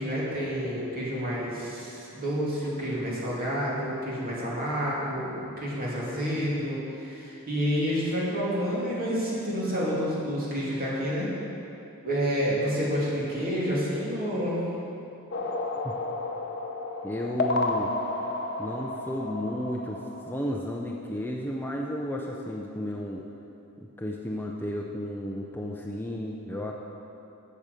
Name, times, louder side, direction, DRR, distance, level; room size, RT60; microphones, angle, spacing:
voice 1, 0.0-11.3 12.0-14.6, equal, 40° right, -6 dB, 2.7 m, -29 dB
sound 1, 15.3-20.7, left 2 dB, 50° left, 0.8 m, -32 dB
voice 2, 17.0-17.9 18.6-23.2 23.8-26.7, left 1 dB, 10° left, -1 dB, 0.5 m, -33 dB
8.6 x 7.6 x 6.7 m, 2.9 s
head